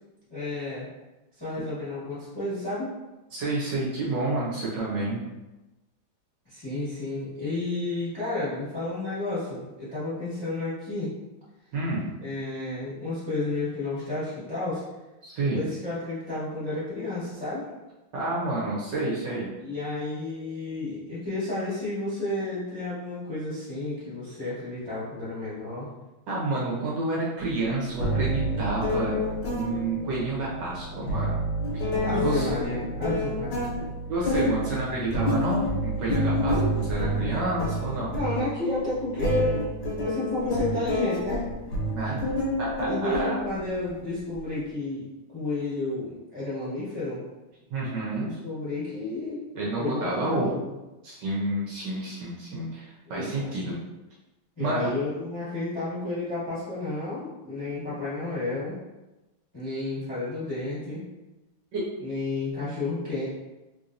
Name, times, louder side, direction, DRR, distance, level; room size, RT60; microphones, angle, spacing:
voice 1, 0.3-0.9 1.4-2.9 6.4-11.1 12.2-14.8 15.5-17.6 19.6-25.9 32.0-33.7 36.5-36.9 38.1-39.6 40.0-41.4 42.9-45.1 45.3-47.2 48.1-49.4 49.8-50.7 53.1-53.5 54.6-58.8 59.5-61.0 62.0-63.2, left 2 dB, 20° left, -11 dB, 0.8 m, -31 dB
voice 2, 3.3-5.2 11.7-12.3 15.2-15.6 18.1-19.5 26.3-29.1 29.5-31.4 31.7-32.5 34.1-36.6 36.9-38.1 41.9-43.5 47.7-48.4 49.5-50.5 51.0-53.7 54.6-54.9 61.7-61.8, right 2 dB, 65° right, -6 dB, 1.3 m, -29 dB
sound 1, 27.4-27.5 28.0-43.9, equal, 65° left, 1.3 m, -28 dB
3.4 x 2.8 x 2.5 m, 1.0 s
omnidirectional pair, 2.3 m